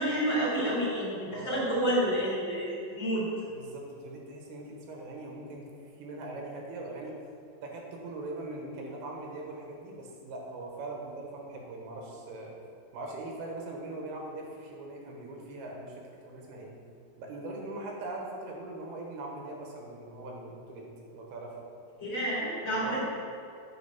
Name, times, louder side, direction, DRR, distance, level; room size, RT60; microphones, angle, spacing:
voice 1, 0.0-3.2 22.0-23.0, right 1 dB, 35° left, -7 dB, 2.4 m, -29 dB
voice 2, 1.3-1.6 3.5-5.7 6.0-7.1 7.6-12.5 12.9-16.7 17.2-20.9 21.1-21.5 22.8-23.0, right 2 dB, 80° right, -1 dB, 3.2 m, -41 dB
9.7 x 4.2 x 5.8 m, 2.4 s
omnidirectional pair, 4.5 m